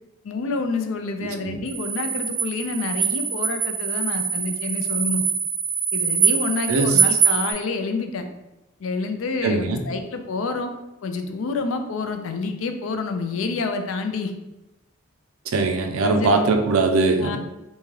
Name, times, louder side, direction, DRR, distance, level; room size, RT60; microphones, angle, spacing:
voice 1, 0.2-5.2 5.9-8.3 8.8-10.7 11.0-14.3 16.0-16.3 17.2-17.4, left 3 dB, 75° left, 7 dB, 0.4 m, -28 dB
voice 2, 1.2-1.6 6.7-7.0 9.4-9.8 15.5-17.4, right 3 dB, 90° right, 6 dB, 0.5 m, -21 dB
sound 1, 1.7-7.5, right 6 dB, 10° right, 0.6 m, -23 dB
3.5 x 2.7 x 3.1 m, 0.95 s
head